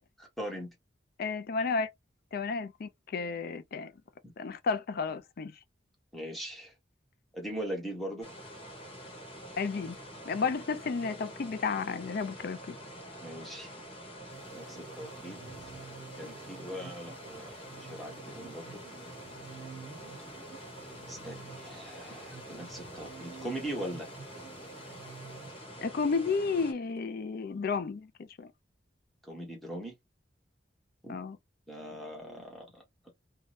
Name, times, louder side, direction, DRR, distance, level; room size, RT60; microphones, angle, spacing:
voice 1, 0.2-0.7 6.1-6.7 7.3-8.3 13.2-13.7 14.5-15.4 15.6-15.7 16.2-18.8 21.1-24.1 29.2-29.9 31.0-31.2 31.7-32.8, right 1 dB, ahead, 1.1 m, -40 dB
voice 2, 1.2-1.9 2.3-3.9 4.4-5.5 9.6-10.0 10.3-12.8 25.8-28.1 28.4-28.5 31.1-31.4, left 4 dB, 55° left, 0.4 m, -32 dB
sound 1, 8.2-26.7, equal, 30° left, 1.1 m, -46 dB
sound 2, 14.3-26.1, right 5 dB, 75° right, 0.8 m, -51 dB
2.7 x 2.2 x 3.1 m
head